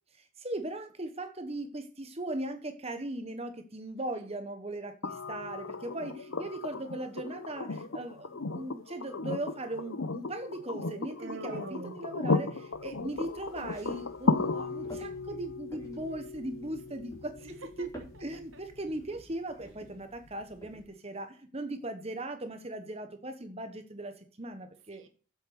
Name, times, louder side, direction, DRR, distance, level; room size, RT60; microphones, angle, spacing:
voice 1, 0.2-17.3 17.8-17.9 18.2-25.0, right 1 dB, 30° right, 8 dB, 1.2 m, -38 dB
voice 2, 4.0-4.3 17.4-18.6 24.9-25.1, right 3 dB, 70° right, 7 dB, 2.2 m, -53 dB
sound 1, 5.0-19.0 20.7-20.8, left 3 dB, 70° left, 0.9 m, -35 dB
Human voice, 11.2-12.9, right 3 dB, 55° right, 1.5 m, -44 dB
sound 2, 12.7-20.8, equal, 15° left, 3.8 m, -52 dB
8.1 x 7.8 x 6.8 m, 0.38 s
head